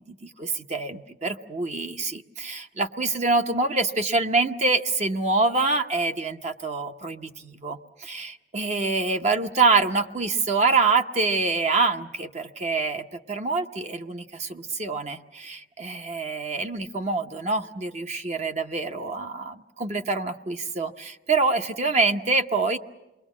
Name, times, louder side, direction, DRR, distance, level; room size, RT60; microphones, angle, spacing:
voice 1, 0.0-22.8, right 3 dB, 40° right, 6 dB, 0.8 m, -26 dB
28.0 x 22.0 x 7.2 m, 1.0 s
head